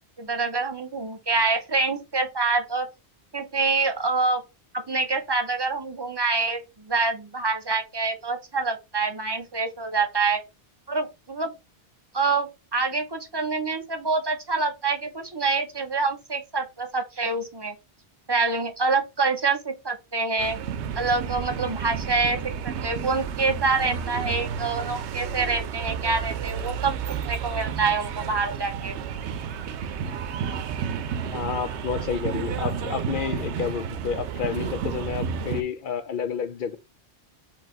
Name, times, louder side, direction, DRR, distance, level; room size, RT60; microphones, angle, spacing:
voice 1, 0.2-2.9 3.3-4.4 4.7-10.4 10.9-11.5 12.1-17.7 18.3-20.6 21.0-26.9 27.2-28.9, right 3 dB, 25° right, 0.6 m, -26 dB
sound 1, 20.4-35.6, right 7 dB, 90° right, 0.9 m, -31 dB
voice 2, 31.3-36.8, left 7 dB, 60° left, 0.6 m, -30 dB
4.5 x 2.9 x 3.8 m
omnidirectional pair, 1.1 m